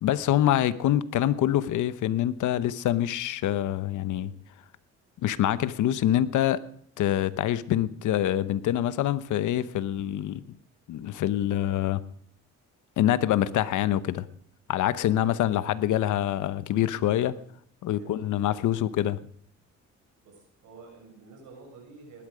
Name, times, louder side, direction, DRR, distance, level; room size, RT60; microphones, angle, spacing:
voice 1, 0.0-4.3 5.2-6.6 7.0-10.4 10.9-12.0 13.0-14.2 14.7-17.3 17.8-19.2, left 12 dB, 80° left, 15 dB, 1.0 m, -25 dB
voice 2, 17.9-18.9 20.2-22.3, right 4 dB, 80° right, 3 dB, 6.2 m, -51 dB
19.0 x 12.5 x 5.0 m, 0.62 s
cardioid pair, 90°, 30 cm